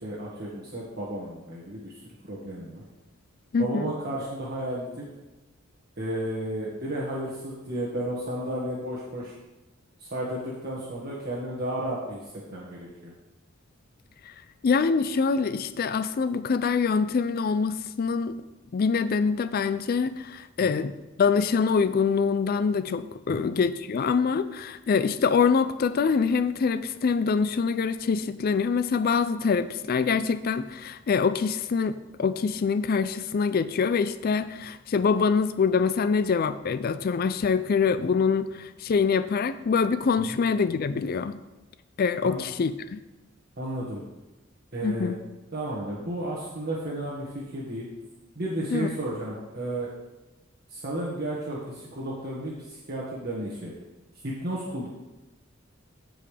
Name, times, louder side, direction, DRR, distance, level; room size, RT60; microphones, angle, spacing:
voice 1, 0.0-1.9 2.3-2.8 3.6-5.1 6.0-9.3 10.0-13.1 20.6-20.8 23.3-23.6 42.2-42.4 43.6-44.0 44.7-45.1 45.5-47.9 48.3-49.9 50.7-53.7 54.2-54.9, right 1 dB, 50° right, -6 dB, 1.7 m, -33 dB
voice 2, 3.5-3.9 14.2-14.3 14.6-18.4 18.7-20.9 21.2-41.4 42.0-43.0 44.8-45.2 48.7-48.9, left 5 dB, 45° left, 12 dB, 0.4 m, -25 dB
15.5 x 5.3 x 3.4 m, 1.1 s
head